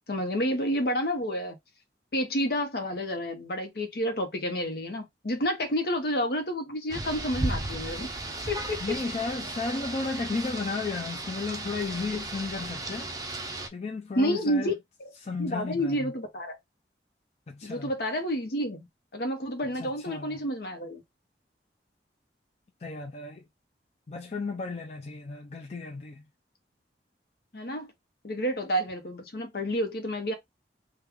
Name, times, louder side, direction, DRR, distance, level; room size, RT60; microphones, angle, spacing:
voice 1, 0.1-1.6 2.1-8.1 8.5-8.8 14.2-14.7 15.0-15.1 15.4-16.6 17.6-18.9 19.1-21.0 27.5-27.9 28.2-30.3, equal, 60° left, 0.9 m, -29 dB
Rain, 6.9-13.7, right 2 dB, 20° right, 0.5 m, -35 dB
voice 2, 8.8-14.7 15.2-16.1 17.5-17.9 19.7-20.4 22.8-23.4 24.1-26.2, left 4 dB, 35° left, 0.4 m, -34 dB
3.2 x 2.3 x 3.4 m
head